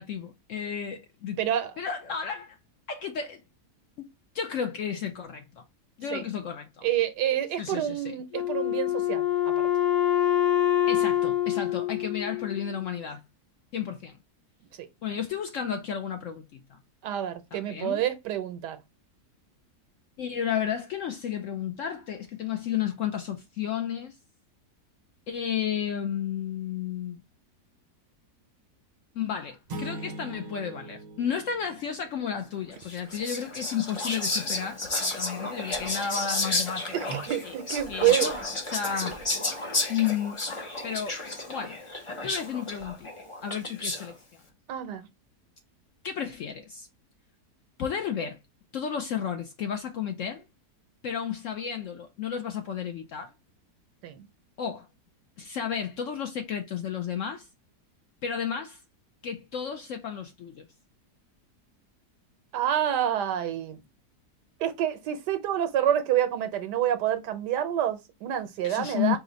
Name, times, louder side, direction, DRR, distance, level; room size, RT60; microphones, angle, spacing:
voice 1, 0.0-1.4 1.8-2.6 2.9-3.4 4.0-4.1 4.3-5.6 6.0-6.9 7.6-8.1 10.9-13.2 13.7-14.2 15.0-16.8 17.5-18.0 20.2-24.2 25.3-27.2 29.2-37.2 37.4-37.6 37.9-38.3 38.7-39.2 39.9-40.4 40.8-41.2 41.5-41.8 42.2-43.1 43.4-44.2 46.0-46.9 47.8-48.4 48.7-50.4 51.0-53.3 54.6-54.9 55.4-57.5 58.2-58.8 59.2-60.6 68.6-69.2, left 8 dB, 70° left, 0.7 m, -32 dB
voice 2, 1.4-1.7 6.1-6.2 6.8-9.2 14.8-14.9 17.0-18.8 37.1-38.3 39.0-39.1 44.7-45.1 54.0-54.3 62.5-63.8 64.6-69.2, right 11 dB, 85° right, 1.3 m, -27 dB
Wind instrument woodwind instrument, 8.3-12.8, left 12 dB, 90° left, 1.3 m, -25 dB
sound 1, 29.7-32.5, right 1 dB, 55° right, 0.4 m, -41 dB
Whispering, 32.8-44.1, left 2 dB, 40° left, 0.4 m, -32 dB
4.8 x 2.1 x 3.8 m
omnidirectional pair, 1.8 m